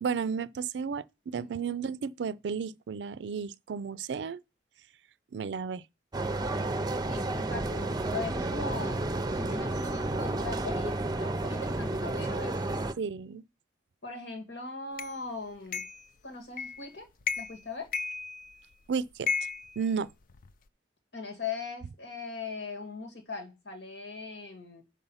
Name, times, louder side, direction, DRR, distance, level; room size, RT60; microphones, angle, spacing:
voice 1, 0.0-4.4 5.3-5.8 13.0-13.4 18.9-19.3 19.8-20.1, right 6 dB, 75° right, 0.4 m, -33 dB
sound 1, 6.1-12.9, right 2 dB, 25° right, 0.5 m, -31 dB
voice 2, 7.1-12.5 14.0-15.8 16.2-17.1 17.4-17.9 21.1-24.8, left 4 dB, 85° left, 2.2 m, -40 dB
sound 2, 15.0-15.1 15.7-16.1 16.6-16.9 17.2-17.6 17.9-18.7 19.3-20.5, left 6 dB, 50° left, 0.5 m, -34 dB
7.3 x 5.5 x 5.6 m
head